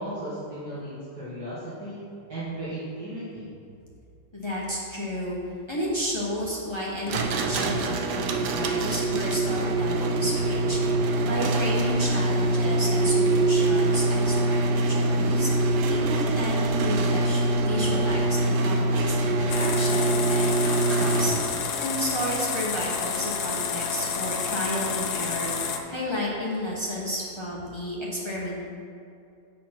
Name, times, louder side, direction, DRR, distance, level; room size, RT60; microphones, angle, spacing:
voice 1, 0.0-2.0 2.3-3.5, right 1 dB, 50° right, -12 dB, 2.2 m, -35 dB
voice 2, 4.3-5.4 5.7-15.5 15.9-21.3 21.8-25.5 25.9-28.7, equal, 35° left, -5 dB, 0.4 m, -32 dB
sound 1, 7.1-21.8, right 2 dB, 75° right, 0.9 m, -24 dB
sound 2, 19.5-25.8, left 6 dB, 75° left, 0.9 m, -30 dB
8.2 x 4.3 x 6.0 m, 2.5 s
omnidirectional pair, 2.4 m